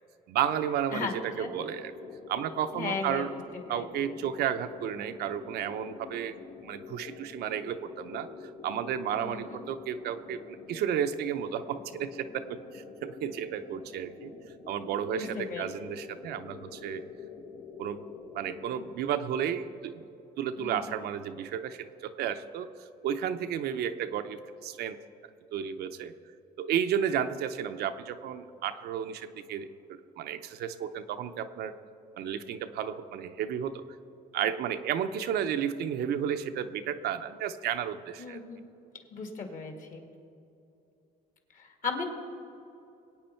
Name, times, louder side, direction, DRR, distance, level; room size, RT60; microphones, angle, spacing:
voice 1, 0.3-1.9 2.3-3.3 3.7-6.4 6.6-8.3 8.6-14.3 14.7-17.0 17.8-18.0 18.3-20.0 20.4-25.0 25.5-26.1 26.6-31.7 32.2-33.8 34.3-38.4, right 9 dB, 70° right, 8 dB, 0.7 m, -32 dB
sound 1, 1.3-19.0, left 5 dB, 80° left, 1.7 m, -46 dB
voice 2, 2.7-3.3 3.7-3.9 9.2-9.6 15.1-15.6 20.6-21.0 38.2-38.6 39.1-40.0 41.5-42.0, left 5 dB, 50° left, 4 dB, 2.0 m, -36 dB
22.0 x 8.9 x 4.4 m, 2.7 s
cardioid pair, 110°, 17 cm